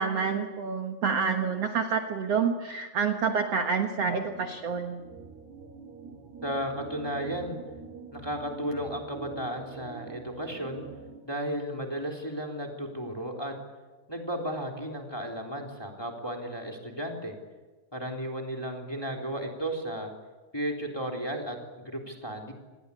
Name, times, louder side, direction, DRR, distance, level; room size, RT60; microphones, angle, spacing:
voice 1, 0.0-5.0, right 6 dB, 60° right, 5 dB, 1.7 m, -28 dB
sound 1, 3.9-11.2, right 5 dB, 80° right, 6.2 m, -45 dB
voice 2, 6.4-7.6 8.1-10.8 11.2-13.5 14.1-17.3 17.9-20.1 20.5-22.5, equal, 5° left, 1 dB, 2.9 m, -34 dB
28.0 x 20.5 x 8.4 m, 1.3 s
omnidirectional pair, 4.8 m